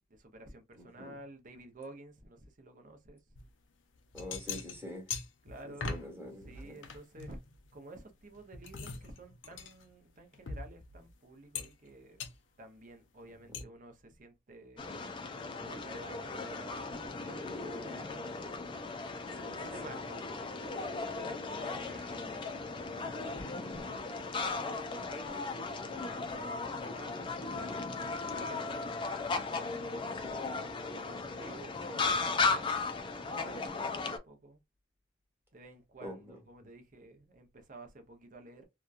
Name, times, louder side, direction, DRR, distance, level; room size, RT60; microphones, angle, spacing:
voice 1, 0.1-3.2 5.4-5.9 6.5-7.4 7.7-12.2 12.6-14.8 15.5-18.9 19.1-25.3 25.8-30.3 30.9-34.6 35.5-38.7, right 2 dB, 45° right, 0.7 m, -52 dB
voice 2, 0.7-1.1 4.1-5.1 5.6-6.8 19.4-19.9 30.1-30.5 36.0-36.3, left 1 dB, 15° right, 1.2 m, -45 dB
sound 1, 3.4-3.5 4.0-6.1 6.4-7.9 8.3-11.1 11.5-11.9 12.2-12.4 13.5-13.6, left 5 dB, 80° left, 0.5 m, -42 dB
sound 2, 14.8-34.2, left 4 dB, 25° left, 0.4 m, -36 dB
2.9 x 2.3 x 2.3 m
head